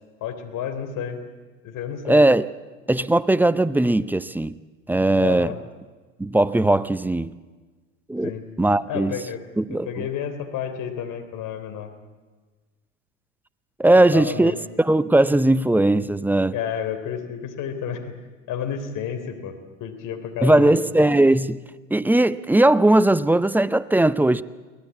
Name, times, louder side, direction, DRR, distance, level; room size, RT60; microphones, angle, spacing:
voice 1, 0.2-1.2 1.6-2.2 5.2-5.6 8.2-8.4 8.9-9.4 9.7-11.9 14.1-14.6 16.5-18.1 18.5-19.5 19.8-20.8, left 8 dB, 50° left, 3.5 m, -30 dB
voice 2, 2.0-2.5 2.9-4.6 4.9-5.5 6.2-7.3 8.1-8.3 8.6-9.2 9.6-10.0 13.8-14.5 14.8-16.6 20.4-21.6 21.9-24.4, right 1 dB, 5° right, 0.6 m, -18 dB
23.5 x 18.5 x 8.4 m
hypercardioid pair, 80°, 39 cm